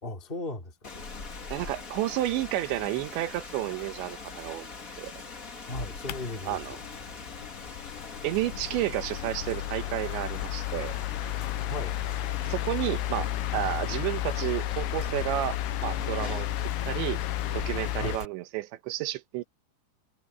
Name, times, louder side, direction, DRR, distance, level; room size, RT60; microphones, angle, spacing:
voice 1, 0.0-0.9 5.7-6.6 11.7-12.0 18.0-18.2, left 2 dB, 15° left, 2.9 m, -36 dB
Rain, 0.8-18.2, left 4 dB, 50° left, 1.0 m, -42 dB
voice 2, 1.5-4.7 5.0-5.1 6.5-6.8 8.2-10.9 12.5-16.5 16.9-17.2 17.5-19.4, right 15 dB, 80° right, 3.3 m, -31 dB
sound 1, 5.7-18.2, left 14 dB, 80° left, 2.9 m, -33 dB
omnidirectional pair, 5.2 m